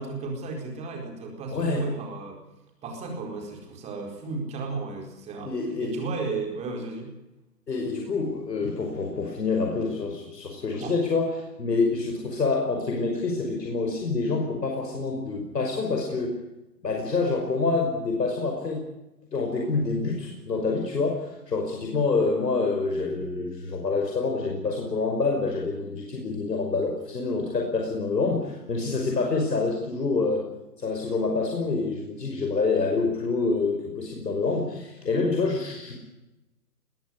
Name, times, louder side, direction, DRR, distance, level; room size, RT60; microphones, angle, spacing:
voice 1, 0.0-2.4 2.8-7.1 10.8-10.9, right 4 dB, 15° right, 2 dB, 4.5 m, -34 dB
voice 2, 1.5-1.9 5.4-6.0 7.7-11.3 11.6-16.4 16.8-18.8 19.3-30.5 30.8-36.0, left 3 dB, 80° left, 1 dB, 5.7 m, -27 dB
21.0 x 15.5 x 9.8 m, 0.97 s
hypercardioid pair, 155°, 48 cm